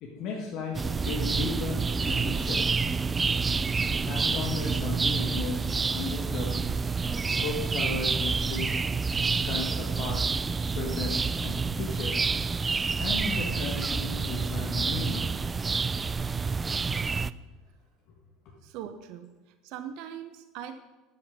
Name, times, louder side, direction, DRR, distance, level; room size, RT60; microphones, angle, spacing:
voice 1, 0.0-2.7 4.0-6.6 7.4-8.7 9.4-10.3 10.7-12.2 13.0-15.3, left 4 dB, 55° left, 0 dB, 1.9 m, -35 dB
sound 1, 0.7-17.3, right 4 dB, 20° right, 0.4 m, -28 dB
voice 2, 18.6-19.3 19.6-20.8, right 9 dB, 55° right, 10 dB, 0.7 m, -40 dB
12.5 x 10.0 x 5.2 m, 1.2 s
figure-of-eight pair, 70°, 0 cm